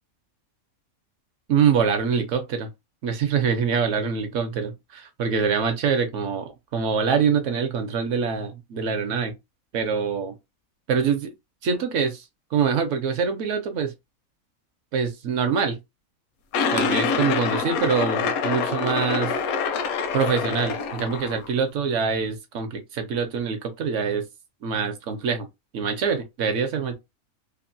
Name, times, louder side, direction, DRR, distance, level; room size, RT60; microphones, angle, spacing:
voice 1, 1.5-2.7 3.0-9.3 9.7-10.4 10.9-11.3 11.6-12.2 12.5-13.9 14.9-15.8 16.7-19.4 20.1-24.2 24.6-25.5 25.7-27.0, right 6 dB, 65° right, 0.9 m, -24 dB
sound 1, 16.5-21.5, left 5 dB, 85° left, 1.0 m, -26 dB
2.9 x 2.1 x 2.6 m
omnidirectional pair, 1.5 m